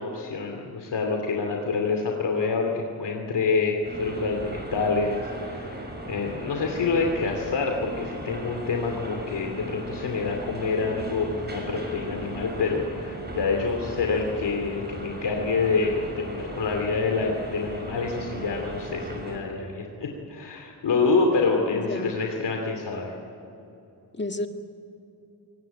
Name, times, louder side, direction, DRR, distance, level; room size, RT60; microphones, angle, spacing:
voice 1, 0.0-23.1, left 4 dB, 80° left, 2 dB, 2.7 m, -27 dB
sound 1, 3.8-19.4, right 1 dB, 25° right, 6.5 m, -37 dB
voice 2, 21.7-22.2 24.1-24.5, left 2 dB, 25° left, 5 dB, 1.9 m, -31 dB
24.5 x 18.5 x 9.0 m, 2.9 s
cardioid pair, 80°, 41 cm